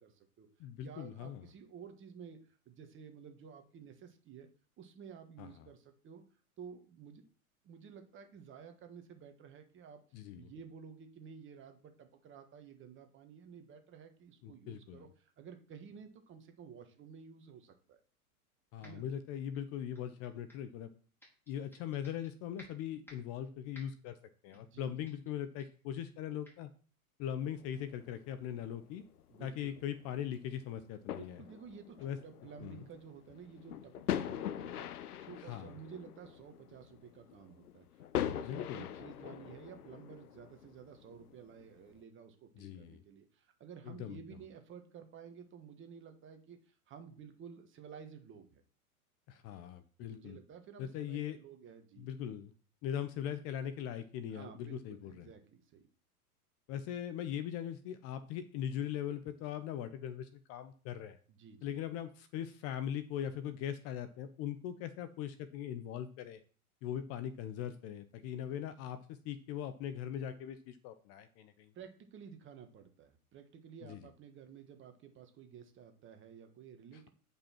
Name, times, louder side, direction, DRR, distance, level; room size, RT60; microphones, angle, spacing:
voice 1, 0.0-0.5 0.8-2.4 2.6-4.5 4.8-6.2 6.6-7.2 7.6-10.0 10.3-18.0 18.8-19.0 24.5-24.9 29.3-29.8 31.1-48.6 50.0-52.1 54.3-55.9 61.3-61.8 71.7-77.1, right 7 dB, 25° right, 6 dB, 1.4 m, -53 dB
voice 2, 0.6-1.5 5.4-5.7 10.1-10.5 14.4-15.1 18.7-20.9 21.5-24.2 24.4-26.7 27.2-29.0 29.4-31.4 32.0-32.2 32.6-32.8 35.4-35.7 38.4-38.9 42.5-43.0 43.8-44.2 49.3-50.4 50.8-51.4 52.0-52.5 52.8-55.3 56.7-61.2 61.6-66.4 66.8-71.7 73.8-74.1, left 10 dB, 35° left, 11 dB, 0.7 m, -40 dB
sound 1, 18.8-19.1 19.5-20.7 21.2-22.3 22.6-23.3 23.7-24.1 24.5-24.8 25.0-25.3 25.6-25.8 26.4-26.6, equal, 5° left, 4.1 m, -59 dB
sound 2, 27.4-42.0, left 11 dB, 80° left, 0.7 m, -43 dB
8.9 x 5.5 x 4.4 m, 0.40 s
hypercardioid pair, 110°, 44 cm